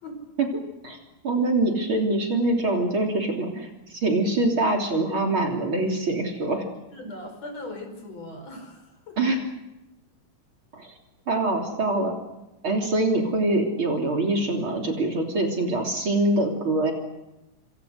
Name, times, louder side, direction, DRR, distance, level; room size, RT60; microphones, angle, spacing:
voice 1, 1.2-6.7 9.2-9.4 10.7-10.9 11.3-12.2 12.6-16.9, right 2 dB, 40° right, 2 dB, 3.9 m, -24 dB
voice 2, 6.9-9.3, left 1 dB, 55° left, 5 dB, 6.2 m, -39 dB
27.0 x 26.5 x 6.5 m, 0.98 s
omnidirectional pair, 3.6 m